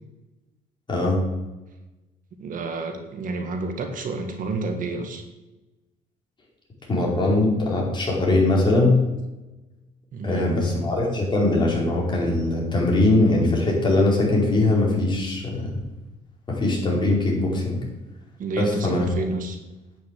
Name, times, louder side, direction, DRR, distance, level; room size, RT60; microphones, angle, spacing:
voice 1, 0.9-1.2 6.9-9.0 10.2-15.7 16.5-17.8 18.6-19.1, left 2 dB, 30° left, -3 dB, 5.0 m, -21 dB
voice 2, 2.4-5.2 10.1-10.5 18.4-19.6, right 3 dB, 50° right, 5 dB, 1.8 m, -29 dB
10.5 x 6.9 x 8.5 m, 1.1 s
cardioid pair, 110°, 17 cm